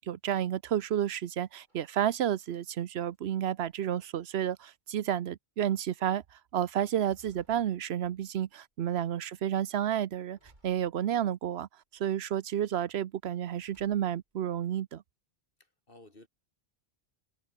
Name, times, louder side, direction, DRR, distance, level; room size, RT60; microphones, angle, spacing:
voice 1, 0.1-6.2 6.5-10.4 10.6-11.7 12.0-15.0, right 10 dB, 80° right, 0.9 m, -31 dB
sound 1, 1.3-3.2 3.6-4.4 5.1-5.2 5.7-6.0 6.6-8.5 9.0-9.5 10.3-11.5 12.0-12.6 13.5-14.3, right 1 dB, 45° right, 6.3 m, -66 dB
voice 2, 15.6-16.3, left 2 dB, 60° left, 4.4 m, -56 dB
omnidirectional pair, 1.1 m